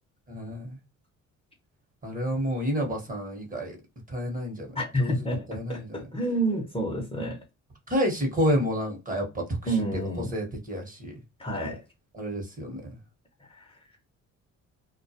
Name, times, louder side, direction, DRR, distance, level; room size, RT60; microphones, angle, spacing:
voice 1, 0.3-0.8 2.0-3.8 4.1-4.7 5.0-6.0 7.9-10.0 10.3-11.2 12.1-12.8, equal, 25° right, 1.0 m, -30 dB
voice 2, 4.7-7.4 9.7-10.3 11.4-11.8 13.5-13.7, right 1 dB, 20° left, 0.7 m, -29 dB
2.2 x 2.1 x 2.6 m
cardioid pair, 90°, 30 cm